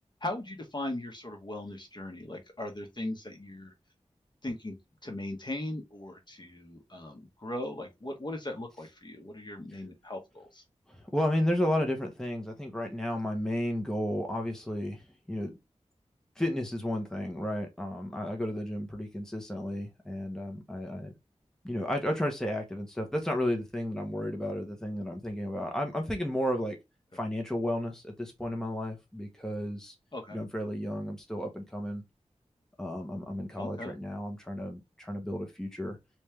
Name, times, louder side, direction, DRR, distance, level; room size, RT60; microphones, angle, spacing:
voice 1, 0.2-3.7 4.4-4.8 5.0-10.6 30.1-30.4 33.6-33.9, left 1 dB, 40° left, 1.1 m, -38 dB
voice 2, 10.9-15.5 16.4-21.1 21.6-26.8 27.1-29.9 30.3-32.0 32.8-36.0, left 1 dB, 5° left, 0.9 m, -33 dB
3.4 x 3.2 x 3.1 m
wide cardioid pair, 80°, 12 cm